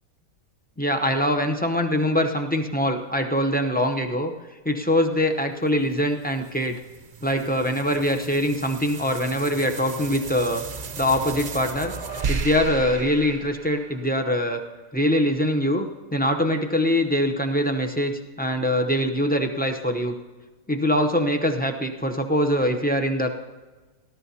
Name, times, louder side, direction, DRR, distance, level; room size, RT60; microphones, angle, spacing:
voice 1, 0.8-4.3 4.6-6.8 7.2-10.6 11.0-11.9 12.3-14.6 14.9-15.9 16.1-20.2 20.7-23.3, left 1 dB, 10° left, 4 dB, 0.4 m, -23 dB
sound 1, 5.8-14.4, right 5 dB, 45° right, 0.5 m, -35 dB
19.5 x 12.5 x 2.8 m, 1.3 s
omnidirectional pair, 1.5 m